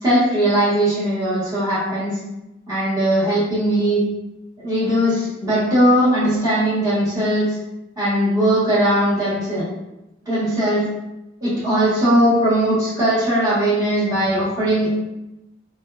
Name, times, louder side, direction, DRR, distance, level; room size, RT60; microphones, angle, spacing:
voice 1, 0.0-2.2 2.7-4.0 4.6-7.6 8.0-9.6 10.2-10.9 11.4-14.9, right 1 dB, 20° right, -12 dB, 1.3 m, -19 dB
2.7 x 2.3 x 2.3 m, 0.93 s
head